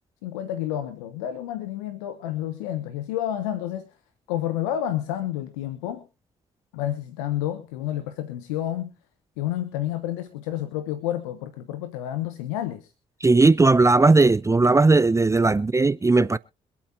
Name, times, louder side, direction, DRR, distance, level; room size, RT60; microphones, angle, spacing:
voice 1, 0.2-3.9 4.3-6.1 6.7-8.9 9.4-12.9, left 12 dB, 80° left, 1.0 m, -30 dB
voice 2, 13.2-16.4, right 3 dB, 15° right, 0.6 m, -17 dB
26.0 x 8.7 x 2.7 m
hypercardioid pair, 45°, 17 cm